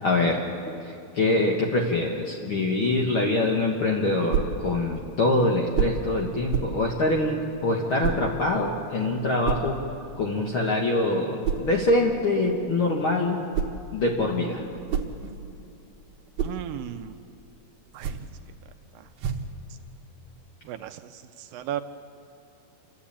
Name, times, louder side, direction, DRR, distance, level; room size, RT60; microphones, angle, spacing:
voice 1, 0.0-0.4 1.1-9.8 10.2-13.4 13.9-14.6, left 2 dB, 70° left, 0 dB, 1.2 m, -24 dB
sound 1, 4.3-4.6 5.7-6.1 6.5-6.8 8.0-8.3 9.4-9.7 11.4-11.7 13.3-13.9 14.6-15.6 16.1-16.6 17.9-18.4 19.2-19.6, right 7 dB, 65° right, 1.9 m, -29 dB
voice 2, 16.4-17.1 17.9-18.2 19.0-19.1 20.7-21.8, right 12 dB, 80° right, 8 dB, 2.2 m, -35 dB
28.0 x 13.0 x 8.5 m, 2.6 s
omnidirectional pair, 4.5 m